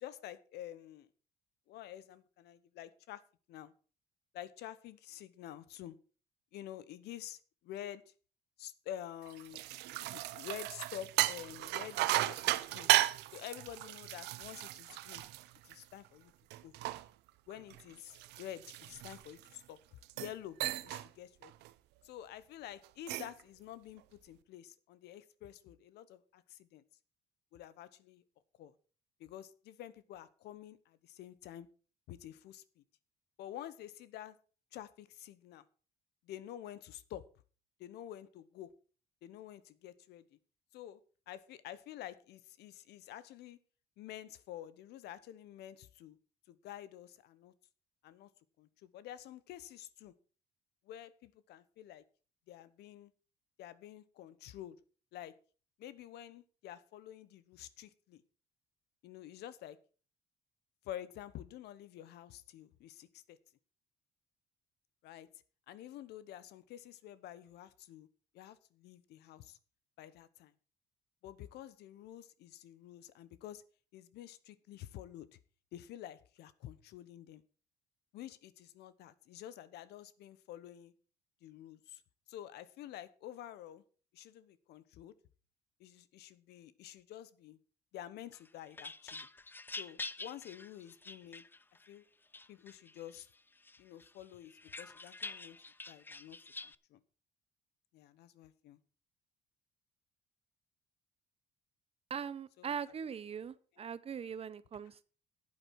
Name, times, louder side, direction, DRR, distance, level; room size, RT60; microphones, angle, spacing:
voice 1, 0.0-1.1 1.7-3.2 3.5-3.7 4.3-6.0 6.5-7.4 7.6-8.0 8.6-9.6 9.9-12.9 13.3-15.2 15.6-16.3 16.6-16.7 17.5-19.8 20.1-20.6 20.8-21.5 22.0-26.8 27.5-28.2 28.6-28.7 29.2-31.7 32.1-32.8 33.4-34.4 34.7-35.6 36.3-37.2 37.8-38.7 39.2-40.2 40.7-41.0 41.3-43.6 44.0-46.2 46.5-47.5 48.0-48.3 48.6-50.1 50.9-52.0 52.5-53.1 53.6-54.8 55.1-55.3 55.8-58.2 59.0-59.8 60.8-63.4 65.0-65.3 65.7-68.1 68.3-69.6 70.0-70.5 71.2-73.6 73.9-75.3 75.7-77.4 78.1-80.9 81.4-82.0 82.3-83.8 84.1-85.1 85.8-87.6 87.9-89.3 89.7-91.4 91.9-92.0 92.5-93.3 93.8-95.6 95.9-96.4 96.6-97.0 97.9-98.8 102.6-102.8, left 12 dB, 80° left, 17 dB, 1.0 m, -49 dB
sound 1, 9.3-16.1 16.5-19.5 20.0-20.4 20.6-21.1 21.4-21.7 22.8-23.4, right 17 dB, 85° right, 0.7 m, -35 dB
sound 2, 88.3-91.9 92.3-93.2 93.6-96.7, left 3 dB, 10° left, 0.5 m, -47 dB
voice 2, 102.1-105.0, right 7 dB, 35° right, 17 dB, 0.8 m, -41 dB
11.0 x 8.7 x 5.9 m, 0.39 s
cardioid pair, 110°, 17 cm